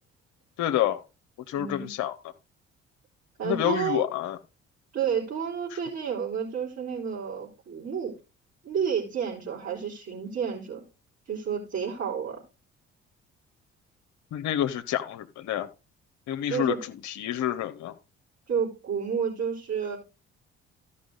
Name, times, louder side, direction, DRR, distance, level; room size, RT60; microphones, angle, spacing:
voice 1, 0.6-1.0 1.5-2.2 3.4-4.4 14.3-15.7 16.3-16.7 17.0-18.0, left 11 dB, 55° left, 0.9 m, -28 dB
voice 2, 1.5-1.9 3.4-4.0 4.9-8.1 8.6-10.8 11.3-12.4 16.5-16.8 18.5-20.0, right 7 dB, 45° right, 4.0 m, -30 dB
14.0 x 5.6 x 4.0 m
hypercardioid pair, 50°, 33 cm